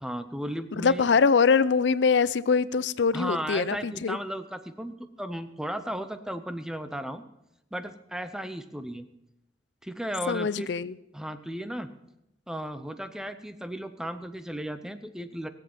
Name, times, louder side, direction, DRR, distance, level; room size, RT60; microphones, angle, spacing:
voice 1, 0.0-1.0 3.1-7.2 7.7-9.0 9.8-10.7 11.1-11.9 12.5-15.5, equal, 5° right, 0.7 m, -35 dB
voice 2, 0.8-4.2 10.3-10.9, left 5 dB, 90° left, 0.5 m, -23 dB
18.5 x 7.8 x 5.9 m
head